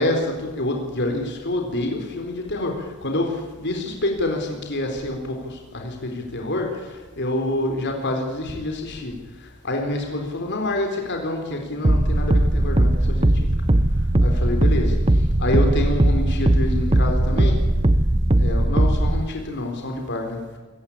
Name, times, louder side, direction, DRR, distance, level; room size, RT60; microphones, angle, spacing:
voice 1, 0.0-9.1 9.6-13.5 14.2-14.9 15.4-17.6 18.4-20.4, left 1 dB, 50° left, 3 dB, 3.9 m, -27 dB
sound 1, 11.8-19.2, right 1 dB, 25° right, 0.9 m, -19 dB
27.5 x 16.0 x 8.6 m, 1.4 s
head